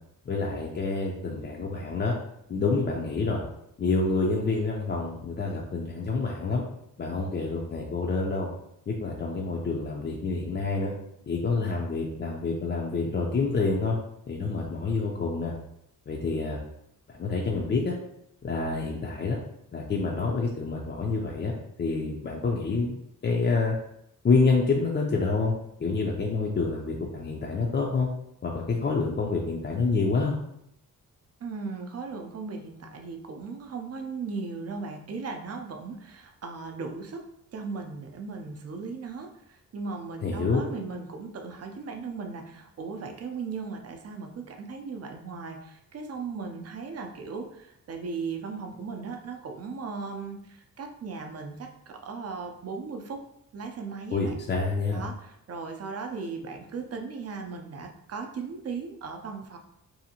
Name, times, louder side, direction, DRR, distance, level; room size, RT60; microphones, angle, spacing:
voice 1, 0.3-2.1 2.5-3.4 3.8-6.6 7.0-8.5 8.9-10.9 11.3-14.0 14.3-15.5 16.1-16.6 17.1-18.0 18.4-19.4 19.7-21.5 21.8-23.0 23.2-23.8 24.2-25.5 25.8-28.1 28.4-30.4 40.2-40.6 54.1-55.0, left 3 dB, 35° left, -2 dB, 0.4 m, -27 dB
voice 2, 31.4-37.2 37.5-53.2 53.5-54.4 54.9-59.6, right 4 dB, 45° right, 4 dB, 0.5 m, -37 dB
2.7 x 2.5 x 2.7 m, 0.77 s
wide cardioid pair, 110°, 34 cm